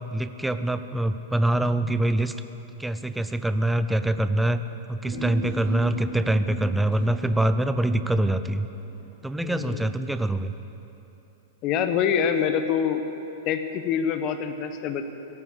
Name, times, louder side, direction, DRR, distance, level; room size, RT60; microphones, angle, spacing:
voice 1, 0.1-2.3 2.8-4.6 4.9-8.7 9.2-10.5, right 1 dB, 5° right, 10 dB, 0.4 m, -24 dB
Human voice, 5.0-9.7 9.9-10.0, right 4 dB, 30° right, 3.0 m, -37 dB
voice 2, 9.4-9.8 11.6-13.0 13.4-15.1, left 7 dB, 30° left, 8 dB, 1.0 m, -25 dB
17.0 x 9.8 x 8.0 m, 2.9 s
supercardioid pair, 165°, 0 cm